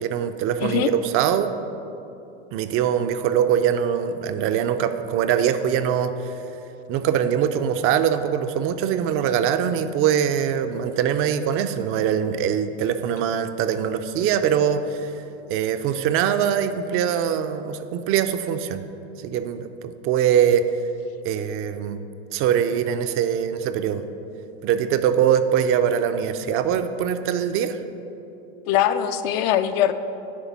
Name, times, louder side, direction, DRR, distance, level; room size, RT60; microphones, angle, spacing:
voice 1, 0.0-1.5 2.5-6.3 6.9-15.1 15.5-18.8 19.2-20.6 21.2-22.0 22.3-24.0 24.6-27.8, right 9 dB, 45° right, 9 dB, 0.5 m, -22 dB
voice 2, 28.7-29.9, left 11 dB, 55° left, 10 dB, 0.5 m, -21 dB
9.6 x 3.3 x 6.0 m, 2.9 s
supercardioid pair, 105°, 31 cm